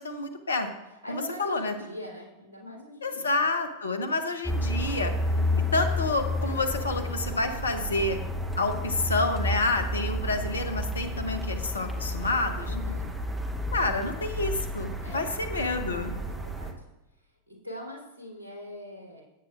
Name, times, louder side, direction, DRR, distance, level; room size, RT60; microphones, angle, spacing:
voice 1, 0.0-0.7 1.1-1.7 3.0-5.1 5.7-8.2 8.6-12.7 13.7-16.1, left 2 dB, 75° left, 8 dB, 1.0 m, -28 dB
voice 2, 0.9-3.4 5.3-5.7 12.6-13.1 15.0-15.3 16.2-16.8 17.1-19.2, equal, 75° right, -2 dB, 3.6 m, -42 dB
sound 1, 4.4-16.7, left 1 dB, 10° right, 1.1 m, -31 dB
16.0 x 8.6 x 2.5 m, 1.0 s
figure-of-eight pair, 90°, 0 cm